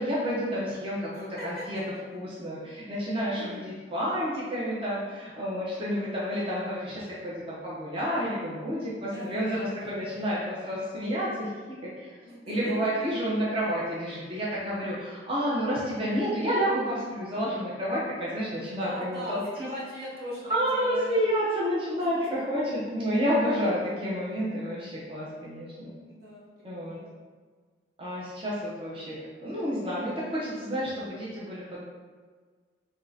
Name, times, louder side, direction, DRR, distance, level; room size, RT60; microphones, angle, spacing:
voice 1, 0.0-1.8 2.1-19.7 20.5-25.9 26.6-27.0 28.0-31.8, equal, 30° right, -7 dB, 0.7 m, -30 dB
voice 2, 1.1-1.6 9.1-10.5 12.3-12.7 18.8-21.2 22.0-22.1 26.1-27.2, equal, 60° right, -5 dB, 0.9 m, -41 dB
3.2 x 2.7 x 3.8 m, 1.5 s
head